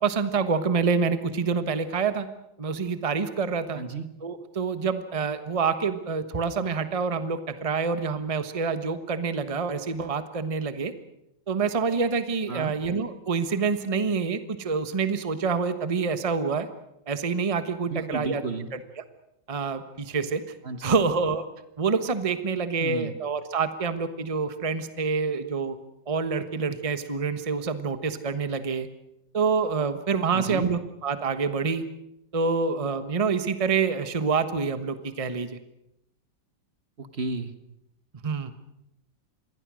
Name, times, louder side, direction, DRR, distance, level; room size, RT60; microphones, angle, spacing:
voice 1, 0.0-2.3 2.6-3.8 4.2-10.9 11.5-16.7 17.1-18.4 19.5-20.4 20.8-21.5 21.8-25.8 26.1-28.9 29.3-31.8 32.3-35.6 38.2-38.5, right 5 dB, 20° right, 10 dB, 1.1 m, -27 dB
voice 2, 3.7-4.0 12.5-12.7 17.9-18.7 20.6-21.0 22.8-23.1 30.3-30.7 37.0-37.5, right 4 dB, 35° right, 10 dB, 1.4 m, -32 dB
27.5 x 22.0 x 6.3 m, 0.81 s
omnidirectional pair, 2.0 m